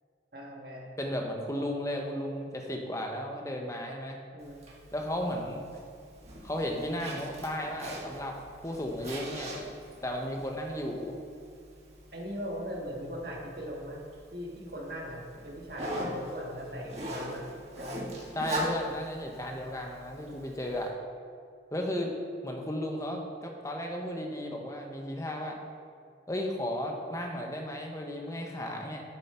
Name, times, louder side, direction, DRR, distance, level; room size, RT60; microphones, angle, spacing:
voice 1, 0.3-0.9 4.3-4.6 10.7-10.8 12.1-14.0 14.3-17.5 17.7-18.0, equal, 55° right, -1 dB, 1.6 m, -39 dB
voice 2, 1.0-4.2 4.9-5.6 6.4-8.4 8.6-9.5 10.0-11.2 18.4-20.9 21.7-22.1 22.4-25.6 26.3-29.0, left 1 dB, 15° left, 2 dB, 0.9 m, -34 dB
Zipper (clothing), 4.4-20.9, equal, 35° right, 1.7 m, -42 dB
10.5 x 7.2 x 4.3 m, 2.3 s
head